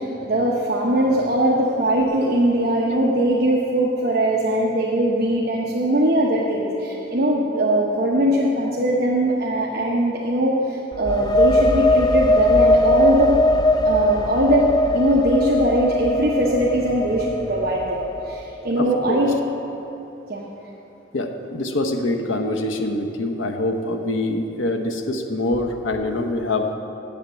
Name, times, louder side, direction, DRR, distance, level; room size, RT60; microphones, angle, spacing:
voice 1, 0.0-13.4 13.8-19.3 20.3-20.4, right 1 dB, 50° right, -4 dB, 0.9 m, -21 dB
sound 1, 10.9-18.5, left 1 dB, 20° left, 0.3 m, -20 dB
voice 2, 18.8-19.2 21.1-26.7, left 2 dB, 85° left, 5 dB, 0.9 m, -24 dB
8.6 x 7.4 x 7.9 m, 2.9 s
head